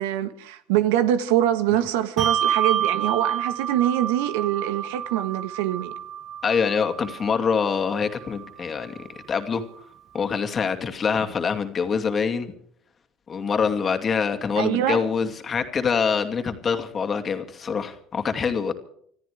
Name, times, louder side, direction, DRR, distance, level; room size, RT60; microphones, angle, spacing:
voice 1, 0.0-5.9 14.6-15.1, right 12 dB, 85° right, 1.4 m, -24 dB
Bell, 2.2-9.0, right 9 dB, 45° right, 0.6 m, -29 dB
voice 2, 6.4-9.6 10.1-12.5 13.3-18.7, left 6 dB, 35° left, 2.6 m, -25 dB
26.0 x 14.0 x 3.5 m
supercardioid pair, 95°, 0 cm